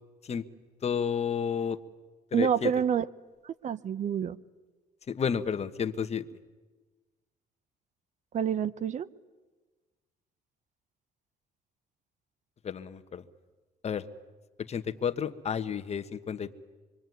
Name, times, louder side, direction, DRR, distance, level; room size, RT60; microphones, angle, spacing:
voice 1, 0.8-1.8 2.3-2.7 5.1-6.3 12.6-13.2 13.8-14.0 14.7-16.5, left 7 dB, 40° left, 9 dB, 1.3 m, -31 dB
voice 2, 2.3-3.0 3.4-4.4 8.3-9.1, right 8 dB, 45° right, 17 dB, 0.8 m, -28 dB
26.5 x 23.5 x 9.4 m, 1.3 s
cardioid pair, 110°, 17 cm